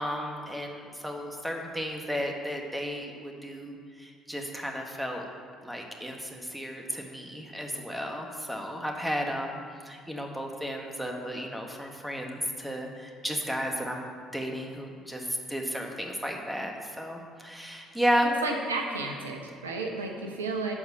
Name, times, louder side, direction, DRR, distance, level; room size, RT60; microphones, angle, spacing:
voice 1, 0.0-5.2 5.6-18.3, equal, 5° right, 2 dB, 1.7 m, -33 dB
voice 2, 18.4-20.7, right 3 dB, 80° right, 2 dB, 0.9 m, -32 dB
12.5 x 4.7 x 7.0 m, 2.1 s
figure-of-eight pair, 50°, 0 cm